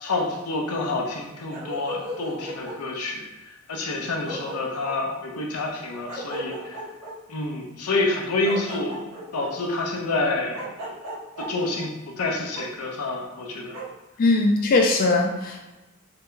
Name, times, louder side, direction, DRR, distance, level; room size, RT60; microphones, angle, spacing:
voice 1, 0.0-3.2 3.7-6.8 7.3-10.6 11.4-11.9 12.2-13.8, left 2 dB, 85° left, 0 dB, 0.7 m, -28 dB
Bark, 1.5-2.8 3.9-4.0 4.2-5.0 6.1-7.2 8.4-9.5 10.5-11.5 12.5-12.7 13.7-13.9, equal, 85° right, 0.9 m, -35 dB
voice 2, 14.2-15.6, left 2 dB, 40° left, 1 dB, 0.3 m, -20 dB
3.8 x 2.2 x 3.7 m, 1.0 s
head